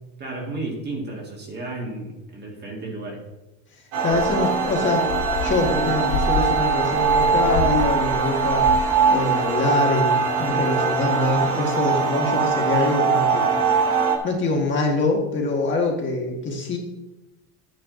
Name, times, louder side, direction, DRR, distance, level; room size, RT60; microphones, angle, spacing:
voice 1, 0.2-3.2, right 2 dB, 25° right, 0 dB, 2.0 m, -33 dB
sound 1, 3.9-14.2, right 5 dB, 80° right, 3.0 m, -21 dB
voice 2, 4.0-5.1 5.4-8.7 9.1-13.5 14.2-16.8, left 2 dB, 25° left, 0 dB, 1.8 m, -24 dB
sound 2, 4.1-9.1 9.4-9.5 10.3-10.4, left 4 dB, 55° left, 1.1 m, -29 dB
12.0 x 9.1 x 3.9 m, 0.97 s
cardioid pair, 160°, 43 cm